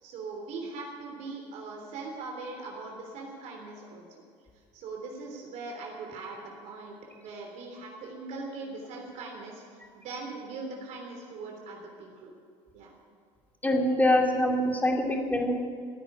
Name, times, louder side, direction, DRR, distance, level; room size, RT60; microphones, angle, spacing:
voice 1, 0.0-4.1 4.7-9.6 9.9-12.3 12.7-12.9, right 3 dB, 60° right, 0 dB, 3.3 m, -40 dB
voice 2, 13.6-15.6, left 1 dB, 10° left, 1 dB, 2.7 m, -24 dB
15.5 x 9.2 x 10.0 m, 2.2 s
supercardioid pair, 100°, 13 cm